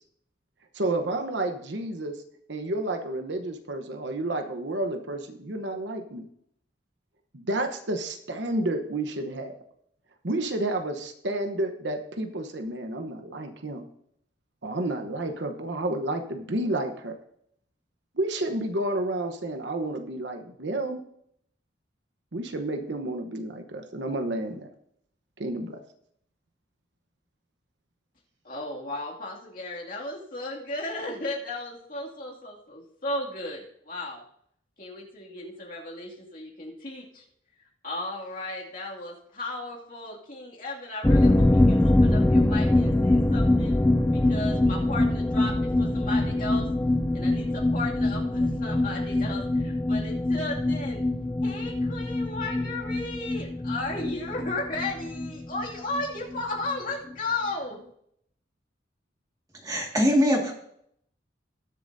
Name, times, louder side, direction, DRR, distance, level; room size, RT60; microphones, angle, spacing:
voice 1, 0.7-2.2 2.5-6.3 7.3-9.6 10.2-13.9 14.6-17.1 18.1-21.0 22.3-24.7 25.4-25.8, right 1 dB, 65° right, 6 dB, 1.0 m, -30 dB
voice 2, 28.4-34.2 34.8-37.2 37.6-43.7 44.1-46.7 47.1-51.1 51.4-57.8, left 2 dB, 45° left, -2 dB, 2.4 m, -35 dB
sound 1, 41.0-56.4 56.7-56.8 57.1-57.2, left 1 dB, 10° left, 0.3 m, -24 dB
voice 3, 59.6-60.5, equal, 20° right, 0 dB, 2.0 m, -22 dB
20.0 x 7.0 x 2.7 m, 0.69 s
head